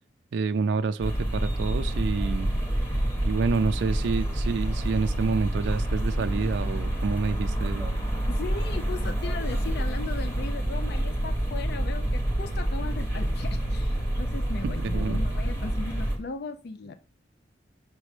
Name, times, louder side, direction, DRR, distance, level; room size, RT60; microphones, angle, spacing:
voice 1, 0.3-2.5 3.2-8.0 14.6-15.2, right 4 dB, 70° right, 0.3 m, -28 dB
sound 1, 1.0-16.2, right 1 dB, 15° left, 1.3 m, -28 dB
voice 2, 8.3-16.9, left 4 dB, 60° left, 0.4 m, -37 dB
5.9 x 5.3 x 3.2 m
head